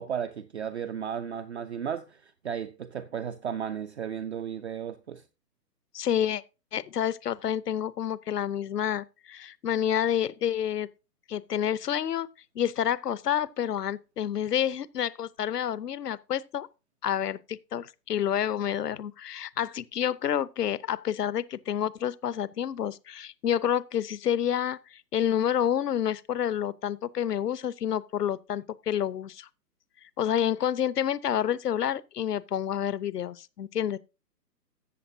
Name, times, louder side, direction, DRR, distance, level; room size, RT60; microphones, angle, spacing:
voice 1, 0.0-5.2, right 8 dB, 45° right, 0.5 m, -34 dB
voice 2, 5.9-6.4 6.7-10.9 11.3-12.3 12.6-16.7 17.0-29.5 30.2-34.0, left 10 dB, 70° left, 0.7 m, -29 dB
13.5 x 7.9 x 2.6 m
figure-of-eight pair, 135°, 49 cm